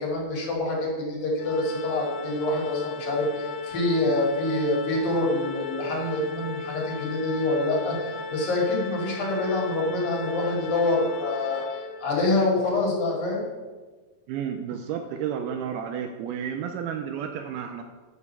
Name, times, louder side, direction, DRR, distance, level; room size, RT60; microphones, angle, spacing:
voice 1, 0.0-11.6 12.0-13.5, left 2 dB, 60° left, -3 dB, 3.8 m, -26 dB
Organ, 1.4-12.3, left 4 dB, 85° left, 3.0 m, -36 dB
voice 2, 14.3-17.8, right 8 dB, 80° right, 5 dB, 2.4 m, -31 dB
11.0 x 5.4 x 6.8 m, 1.3 s
omnidirectional pair, 4.7 m